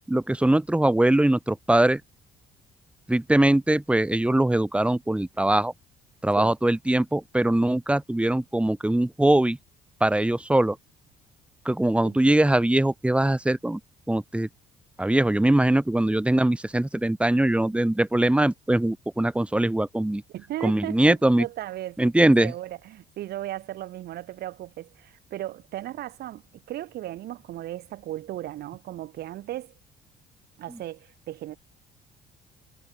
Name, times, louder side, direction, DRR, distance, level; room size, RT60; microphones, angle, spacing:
voice 1, 0.1-2.0 3.1-5.7 6.2-9.6 10.0-10.8 11.7-13.8 14.1-14.5 15.0-20.2 20.6-21.5 22.0-22.5, right 1 dB, 5° right, 3.8 m, -22 dB
voice 2, 20.3-29.7 30.6-31.6, right 14 dB, 70° right, 4.2 m, -36 dB
cardioid pair, 110°, 17 cm